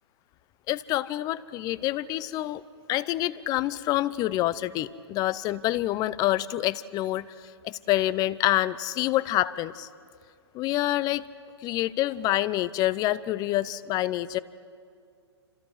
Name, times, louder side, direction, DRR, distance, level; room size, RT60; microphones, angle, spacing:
voice 1, 0.7-2.6 2.9-7.3 7.6-9.9 10.5-11.2 11.6-14.4, left 15 dB, 25° left, 19 dB, 0.7 m, -27 dB
29.5 x 26.5 x 4.9 m, 2.3 s
hypercardioid pair, 125°, 14 cm